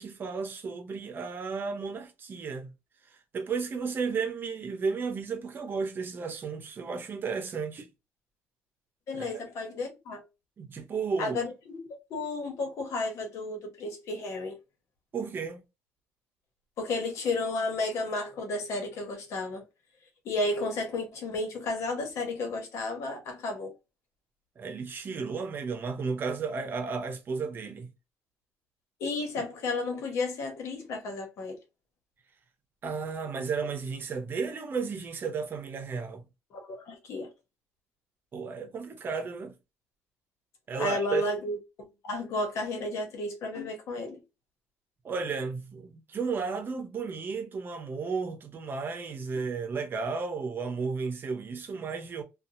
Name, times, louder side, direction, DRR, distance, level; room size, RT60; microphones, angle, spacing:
voice 1, 0.0-2.7 3.3-7.9 9.1-9.3 10.6-11.4 15.1-15.6 24.6-27.9 32.8-36.2 38.3-39.5 40.7-41.2 45.0-52.2, right 5 dB, 45° right, 0.8 m, -33 dB
voice 2, 9.1-10.2 11.2-14.6 16.8-19.6 20.2-23.7 29.0-31.6 36.5-37.3 40.8-41.6 42.0-44.2, left 2 dB, 70° left, 1.2 m, -32 dB
2.8 x 2.5 x 2.6 m
cardioid pair, 90°, 5 cm